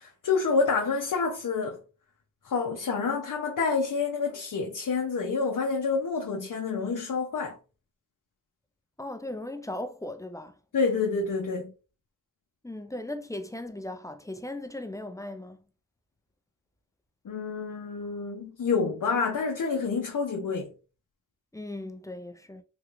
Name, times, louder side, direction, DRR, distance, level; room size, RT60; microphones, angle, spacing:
voice 1, 0.0-1.8 2.4-7.6 10.7-11.7 17.3-20.7, left 4 dB, 85° left, 0.5 m, -28 dB
voice 2, 9.0-10.5 12.6-15.6 21.5-22.6, left 1 dB, 10° left, 0.4 m, -37 dB
3.4 x 2.3 x 3.0 m
wide cardioid pair, 65°, 31 cm